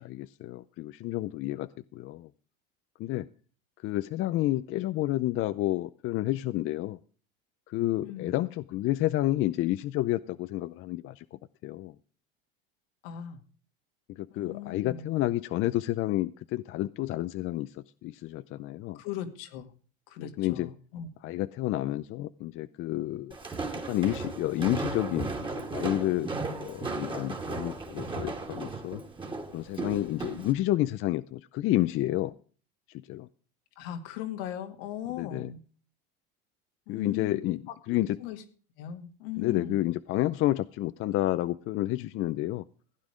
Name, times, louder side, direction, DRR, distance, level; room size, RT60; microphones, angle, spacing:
voice 1, 0.0-2.3 3.0-3.3 3.8-7.0 7.7-11.9 14.1-19.0 20.2-20.7 21.2-23.4 23.7-26.3 26.6-29.0 29.5-32.3 32.9-33.3 35.2-35.5 36.9-38.2 39.4-42.6, left 15 dB, 45° left, 14 dB, 0.5 m, -30 dB
voice 2, 8.0-8.3 13.0-13.4 14.3-15.1 18.9-19.7 20.1-21.1 33.8-35.6 36.9-37.4 37.7-37.8 38.2-38.4 38.8-39.8, left 10 dB, 80° left, 6 dB, 2.3 m, -38 dB
Walk footsteps, 23.3-30.5, right 3 dB, 15° right, 2.3 m, -35 dB
15.5 x 9.5 x 5.0 m, 0.41 s
supercardioid pair, 120°, 30 cm